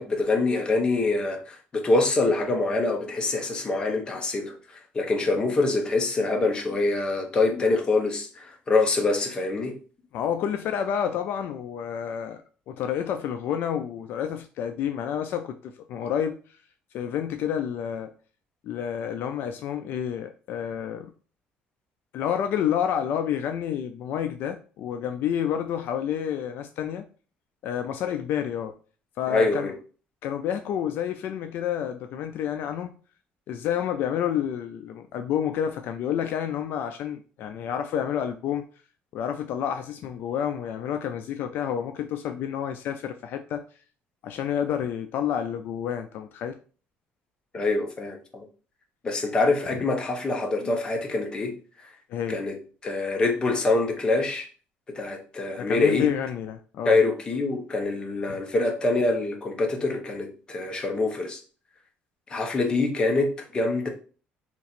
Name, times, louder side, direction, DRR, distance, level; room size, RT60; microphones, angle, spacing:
voice 1, 0.0-9.8 29.3-29.7 47.5-48.4 49.0-51.6 52.3-52.6 52.8-54.5 54.9-56.2 56.9-61.4 62.3-63.9, left 3 dB, 25° left, 3 dB, 0.7 m, -25 dB
voice 2, 10.1-16.4 16.9-18.1 18.6-21.1 22.1-27.0 27.6-28.7 29.2-29.7 30.2-32.9 33.5-38.7 39.1-43.6 44.2-46.6 49.7-49.8 52.1-52.4 55.6-57.0 58.3-58.4, left 9 dB, 60° left, 7 dB, 0.3 m, -29 dB
2.9 x 2.5 x 4.2 m, 0.38 s
cardioid pair, 150°, 4 cm